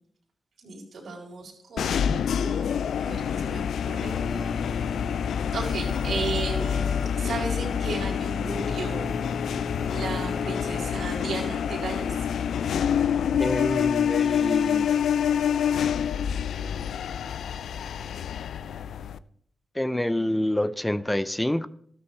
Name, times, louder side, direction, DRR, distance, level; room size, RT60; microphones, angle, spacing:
voice 1, 0.6-4.2 5.5-9.1 9.4-9.5 9.9-12.3, right 3 dB, 80° right, 4.3 m, -35 dB
sound 1, 1.8-19.2, left 8 dB, 85° left, 0.4 m, -27 dB
sound 2, 4.0-11.5, left 2 dB, 35° left, 1.0 m, -37 dB
voice 2, 13.4-14.9 19.8-21.7, left 1 dB, 15° left, 0.6 m, -27 dB
13.5 x 12.5 x 3.3 m
supercardioid pair, 40°, 0 cm